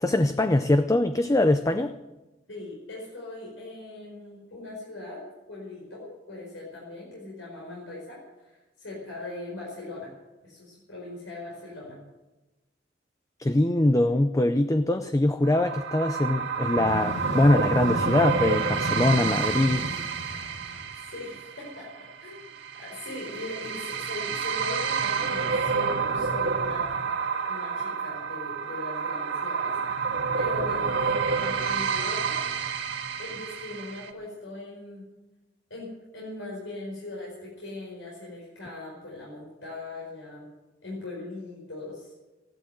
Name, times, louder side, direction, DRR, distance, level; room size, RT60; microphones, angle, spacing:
voice 1, 0.0-1.9 13.4-19.9, left 1 dB, 15° left, 10 dB, 0.5 m, -23 dB
voice 2, 2.5-10.1 10.4-12.0 20.6-20.7 21.0-22.4 22.8-27.0 27.5-32.5 33.2-35.0 35.7-40.5 40.8-42.1, left 2 dB, 80° left, -4 dB, 4.9 m, -40 dB
sound 1, 15.4-34.1, right 5 dB, 65° right, 1.8 m, -29 dB
sound 2, 16.5-21.1, left 1 dB, 40° left, 6.4 m, -34 dB
15.0 x 12.0 x 7.8 m, 1.1 s
head